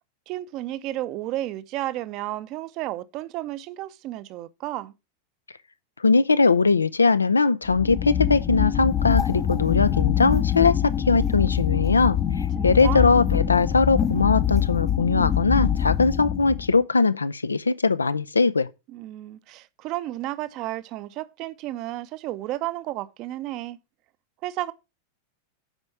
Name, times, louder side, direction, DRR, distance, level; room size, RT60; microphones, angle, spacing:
voice 1, 0.3-4.9 12.6-13.2 18.9-23.8 24.4-24.7, right 15 dB, 40° right, 0.7 m, -32 dB
voice 2, 6.0-18.7, left 4 dB, 75° left, 0.5 m, -21 dB
sound 1, 7.7-16.8, left 10 dB, 25° left, 0.7 m, -24 dB
8.0 x 5.3 x 5.8 m
figure-of-eight pair, 90°, 0 cm